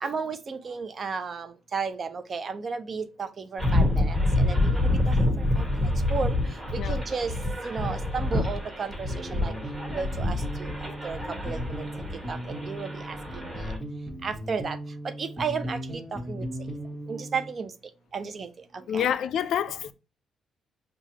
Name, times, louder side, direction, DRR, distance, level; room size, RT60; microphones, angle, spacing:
voice 1, 0.0-6.4 6.7-7.3 7.6-9.5 9.9-10.7 11.0-11.8 12.3-13.2 13.4-13.7 14.2-14.8 15.0-16.5 17.0-17.7 18.1-19.1, right 5 dB, 45° right, 0.6 m, -34 dB
sound 1, 3.6-13.8, left 1 dB, 20° right, 1.5 m, -27 dB
sound 2, 9.1-17.5, right 1 dB, 5° left, 1.2 m, -38 dB
voice 2, 18.9-19.9, left 9 dB, 75° left, 0.4 m, -28 dB
5.7 x 2.4 x 2.8 m
cardioid pair, 90°, 0 cm